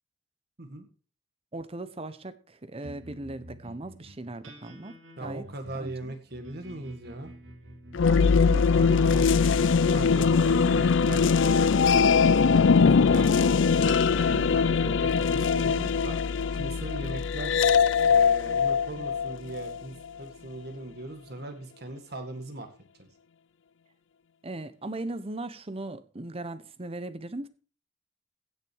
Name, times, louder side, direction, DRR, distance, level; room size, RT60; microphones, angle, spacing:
voice 1, 1.5-5.5 5.7-6.1 8.1-9.7 14.3-14.6 24.4-27.5, right 2 dB, 30° right, 0.9 m, -39 dB
sound 1, 2.8-17.5, equal, 85° right, 2.6 m, -51 dB
voice 2, 5.2-7.3 8.1-9.3 9.9-13.4 13.8-16.2 16.5-17.6 18.1-22.7 23.0-23.1, right 2 dB, 55° right, 1.9 m, -40 dB
sound 2, 7.9-19.8, left 5 dB, 75° left, 0.5 m, -22 dB
16.0 x 6.7 x 4.6 m
head